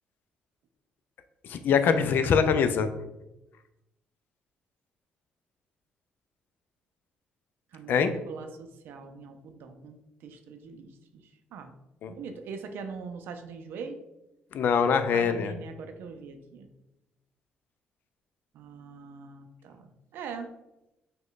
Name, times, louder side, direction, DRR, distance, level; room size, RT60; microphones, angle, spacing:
voice 1, 1.4-2.9 7.9-8.1 12.0-12.1 14.5-15.5, left 6 dB, 65° left, 10 dB, 0.3 m, -23 dB
voice 2, 7.7-11.7 12.1-14.0 15.1-16.7 18.5-20.5, right 5 dB, 75° right, 6 dB, 0.4 m, -42 dB
3.0 x 2.2 x 3.8 m, 0.94 s
cardioid pair, 80°, 4 cm